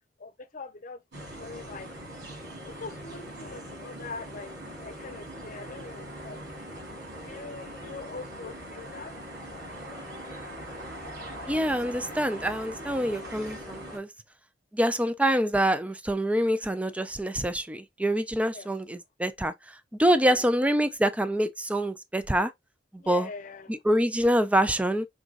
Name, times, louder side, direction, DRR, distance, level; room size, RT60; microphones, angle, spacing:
voice 1, 0.2-1.9 2.6-4.5 4.8-6.4 7.2-9.1 18.5-18.7 20.2-20.4 23.0-23.8, left 4 dB, 50° left, 0.8 m, -42 dB
sound 1, 1.1-14.0, equal, 90° right, 3.0 m, -41 dB
voice 2, 11.5-14.1 14.7-22.5 22.9-23.3 23.7-25.1, right 1 dB, 10° right, 0.4 m, -26 dB
4.8 x 3.9 x 2.4 m
head